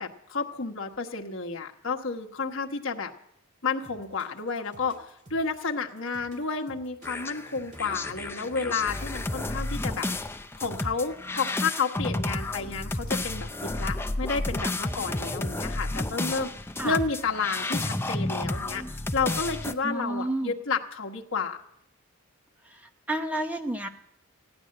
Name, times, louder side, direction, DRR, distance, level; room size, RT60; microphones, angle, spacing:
voice 1, 0.0-3.1 3.6-10.1 10.6-21.6, left 4 dB, 60° left, 2 dB, 1.2 m, -31 dB
sound 1, 3.8-9.5, right 1 dB, 35° right, 2.0 m, -53 dB
sound 2, 7.0-19.7, left 2 dB, 10° left, 0.6 m, -31 dB
voice 2, 19.8-20.5 22.7-22.8 23.1-23.9, right 1 dB, 5° right, 5 dB, 0.9 m, -30 dB
16.0 x 10.5 x 7.6 m, 0.76 s
head